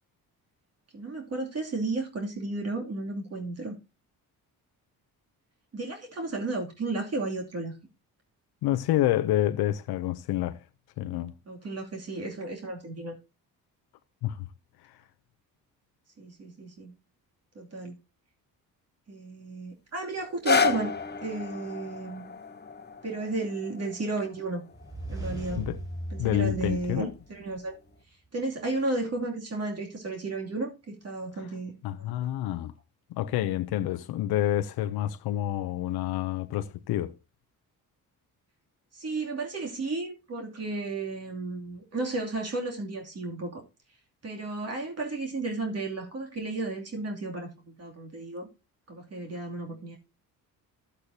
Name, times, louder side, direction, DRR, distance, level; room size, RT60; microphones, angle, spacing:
voice 1, 0.9-3.8 5.7-7.8 11.5-13.2 16.2-16.9 17.5-18.0 19.1-20.9 21.2-22.3 23.0-24.6 25.1-25.7 26.1-27.7 28.3-31.8 38.9-43.6 44.2-48.5 48.9-50.0, right 2 dB, 40° right, 2.7 m, -33 dB
voice 2, 8.6-10.6 11.0-11.3 14.2-14.4 25.5-25.8 26.2-27.1 31.8-32.7 33.1-37.2, left 13 dB, 90° left, 0.7 m, -28 dB
sound 1, 20.2-26.3 26.9-27.0, left 5 dB, 25° left, 1.2 m, -32 dB
sound 2, 24.7-27.7, right 1 dB, 10° right, 4.3 m, -38 dB
13.0 x 8.1 x 2.8 m
cardioid pair, 85°, 37 cm